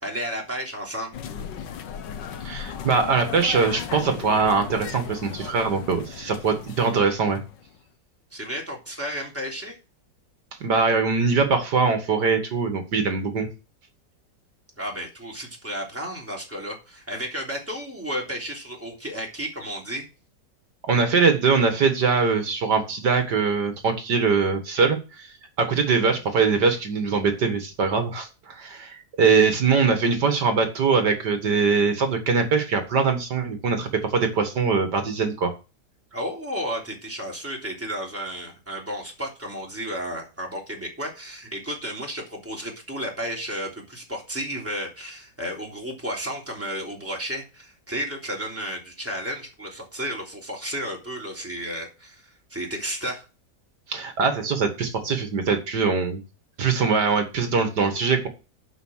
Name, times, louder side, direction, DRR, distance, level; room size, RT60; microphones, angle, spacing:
voice 1, 0.0-1.2 8.3-9.8 14.8-20.1 36.1-53.2, equal, 5° right, -1 dB, 3.4 m, -32 dB
sound 1, 1.1-7.8, left 8 dB, 85° left, 1.7 m, -36 dB
voice 2, 2.4-7.4 10.6-13.5 20.9-35.5 53.9-56.2 56.6-58.3, right 5 dB, 70° right, 6 dB, 2.2 m, -22 dB
11.5 x 5.7 x 6.4 m, 0.31 s
omnidirectional pair, 1.9 m